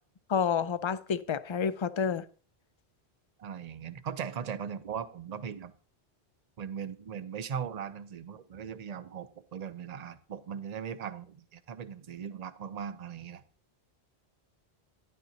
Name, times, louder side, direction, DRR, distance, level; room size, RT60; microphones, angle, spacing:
voice 1, 0.3-2.2, left 7 dB, 45° left, 0.4 m, -29 dB
voice 2, 3.4-5.7 6.6-13.4, right 7 dB, 45° right, 0.7 m, -39 dB
12.0 x 10.5 x 2.9 m
omnidirectional pair, 1.1 m